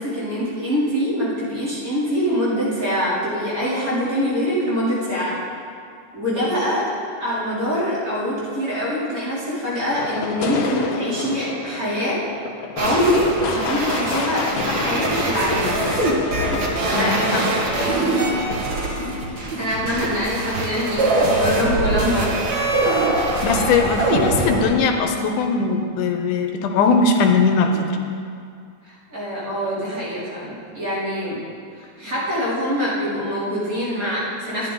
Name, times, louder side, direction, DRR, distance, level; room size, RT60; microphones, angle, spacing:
voice 1, 0.0-5.4 6.1-6.8 7.2-12.2 12.7-15.8 16.8-17.4 17.7-18.4 19.3-22.4 28.8-31.4 31.8-34.7, equal, 25° right, -10 dB, 3.3 m, -24 dB
sound 1, 10.0-18.0, left 4 dB, 70° left, 1.5 m, -29 dB
sound 2, 12.8-24.6, right 2 dB, 50° right, 1.3 m, -23 dB
voice 2, 16.9-17.4 23.4-27.8, left 4 dB, 90° left, 4 dB, 2.3 m, -20 dB
12.5 x 10.5 x 3.9 m, 2.3 s
omnidirectional pair, 3.6 m